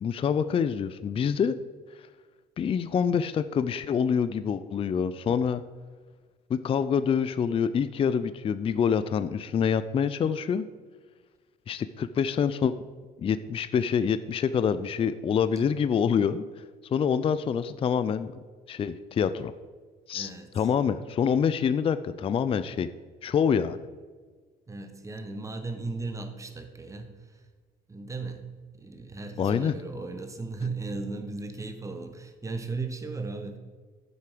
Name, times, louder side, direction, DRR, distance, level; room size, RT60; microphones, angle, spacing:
voice 1, 0.0-1.6 2.6-5.6 6.5-10.7 11.7-12.8 13.2-16.4 16.9-19.5 20.1-20.3 20.6-22.9 23.2-23.8 29.4-29.7, left 7 dB, 35° left, 13 dB, 0.4 m, -26 dB
voice 2, 20.1-20.7 24.7-27.4 27.9-28.4 28.7-33.6, right 3 dB, 20° right, 7 dB, 1.2 m, -36 dB
11.5 x 7.0 x 5.0 m, 1.5 s
cardioid pair, 110°, 17 cm